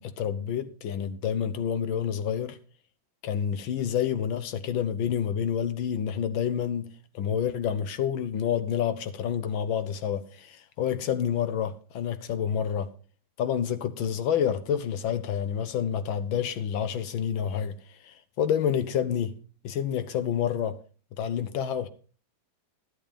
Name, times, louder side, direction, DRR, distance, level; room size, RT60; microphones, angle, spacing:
voice 1, 0.0-2.6 3.2-12.9 13.4-19.4 19.6-20.8 21.2-21.9, left 8 dB, 75° left, 1.6 m, -28 dB
11.5 x 9.1 x 5.1 m
omnidirectional pair, 2.2 m